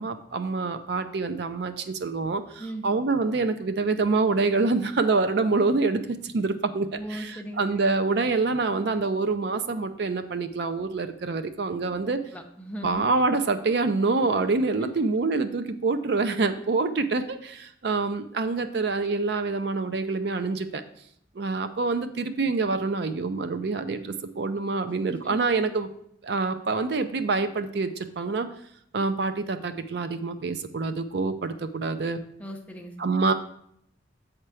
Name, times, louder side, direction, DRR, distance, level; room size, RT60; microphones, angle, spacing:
voice 1, 0.0-12.2 12.8-20.8 21.4-25.9 26.2-28.5 28.9-32.2 33.0-33.3, right 3 dB, 60° right, 9 dB, 0.4 m, -26 dB
voice 2, 6.9-7.6 12.0-13.0 14.8-14.9 25.1-25.4 32.4-33.0, equal, 5° left, 2 dB, 0.7 m, -38 dB
7.8 x 4.4 x 4.8 m, 0.70 s
head